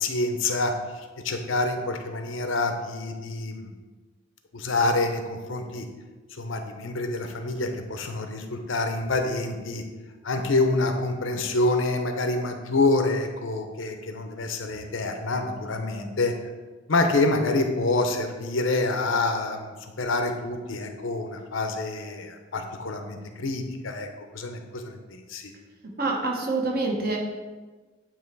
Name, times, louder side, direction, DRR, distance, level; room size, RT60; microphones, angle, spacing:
voice 1, 0.0-0.7 1.2-3.7 4.5-5.8 6.4-9.8 10.2-16.3 16.9-24.1 24.3-25.5, left 2 dB, 85° left, 5 dB, 0.8 m, -27 dB
voice 2, 26.0-27.2, right 3 dB, 50° right, 0 dB, 1.2 m, -26 dB
8.9 x 3.1 x 4.6 m, 1.3 s
head